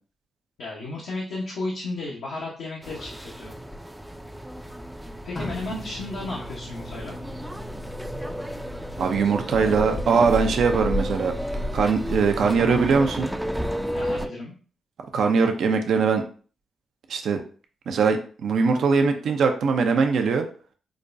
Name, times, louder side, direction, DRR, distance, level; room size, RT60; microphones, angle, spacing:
voice 1, 0.6-3.5 5.2-7.2 13.9-14.5, left 2 dB, 80° left, -5 dB, 0.9 m, -33 dB
sound 1, 2.8-14.3, equal, 5° right, 0.4 m, -32 dB
sound 2, 4.5-12.5, left 2 dB, 30° left, 0.7 m, -41 dB
voice 2, 9.0-11.3 11.7-13.3 15.1-16.2 17.1-17.4 17.9-20.5, right 5 dB, 75° right, 5 dB, 0.5 m, -21 dB
4.9 x 2.2 x 2.5 m, 0.41 s
supercardioid pair, 55°, 0 cm